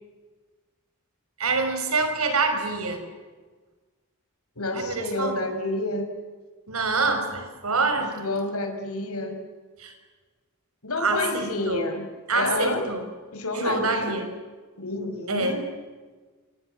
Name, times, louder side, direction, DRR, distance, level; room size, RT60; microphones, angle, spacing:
voice 1, 1.4-3.0 4.7-5.4 6.7-8.2 9.8-9.9 11.0-11.8 12.3-13.0 13.5-14.3 15.3-15.6, right 3 dB, 85° right, 7 dB, 5.7 m, -26 dB
voice 2, 4.6-6.1 8.1-9.4 10.8-12.0 12.3-12.8 13.3-14.2 14.8-15.7, left 2 dB, 90° left, 5 dB, 5.4 m, -29 dB
27.5 x 27.0 x 7.9 m, 1.4 s
head